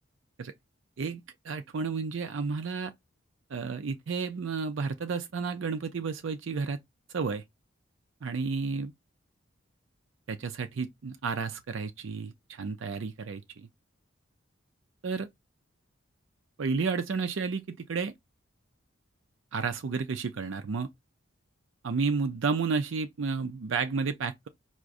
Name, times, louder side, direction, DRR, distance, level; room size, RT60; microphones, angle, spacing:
voice 1, 1.0-2.9 3.5-6.8 7.1-7.4 8.2-8.9 10.3-13.7 15.0-15.3 16.6-18.1 19.5-20.9 21.8-24.5, right 5 dB, 70° right, 0.4 m, -31 dB
4.7 x 2.1 x 2.5 m
head